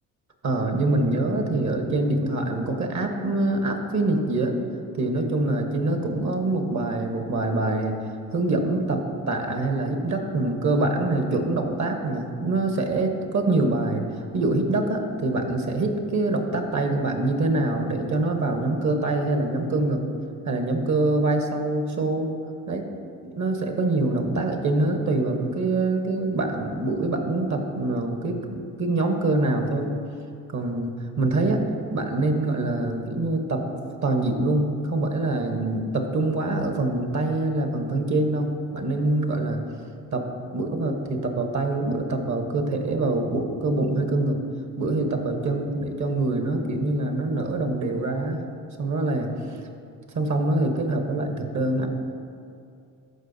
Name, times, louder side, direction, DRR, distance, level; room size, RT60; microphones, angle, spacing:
voice 1, 0.4-4.6 4.9-8.0 8.3-14.0 14.3-20.0 20.4-22.3 22.7-22.9 23.2-30.0 30.5-31.6 31.9-33.6 34.0-39.6 40.1-40.2 40.5-44.4 44.8-48.4 48.8-49.6 50.1-51.9, right 2 dB, 50° right, 4 dB, 1.1 m, -25 dB
13.0 x 4.7 x 2.7 m, 2.4 s
supercardioid pair, 70°, 37 cm